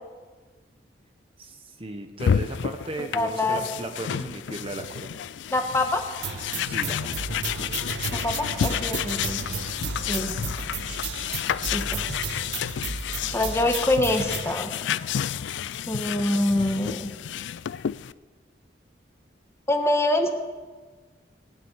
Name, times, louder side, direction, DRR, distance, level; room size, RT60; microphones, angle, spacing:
voice 1, 1.4-5.2 6.6-7.3 7.6-7.8, right 2 dB, 30° right, 6 dB, 1.1 m, -36 dB
sound 1, 2.2-18.1, left 8 dB, 80° left, 0.4 m, -30 dB
voice 2, 3.1-3.6 4.2-4.3 5.5-6.0 8.1-9.4 10.1-10.3 11.7-12.0 13.3-14.7 15.9-17.1 19.7-20.3, left 1 dB, 15° left, 4 dB, 1.3 m, -25 dB
sound 2, 6.2-14.5, right 5 dB, 80° right, 0.9 m, -34 dB
18.5 x 7.0 x 9.0 m, 1.4 s
head